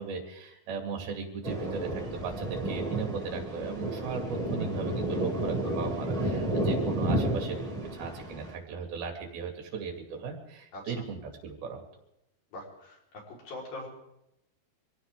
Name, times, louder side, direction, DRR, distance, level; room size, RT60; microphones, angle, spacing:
voice 1, 0.0-11.9, right 5 dB, 75° right, 2 dB, 4.1 m, -37 dB
Thunder, 1.4-8.5, right 1 dB, 50° right, 0.4 m, -31 dB
voice 2, 12.5-13.9, left 2 dB, 65° left, -4 dB, 6.0 m, -42 dB
24.0 x 16.0 x 3.6 m, 0.84 s
omnidirectional pair, 4.5 m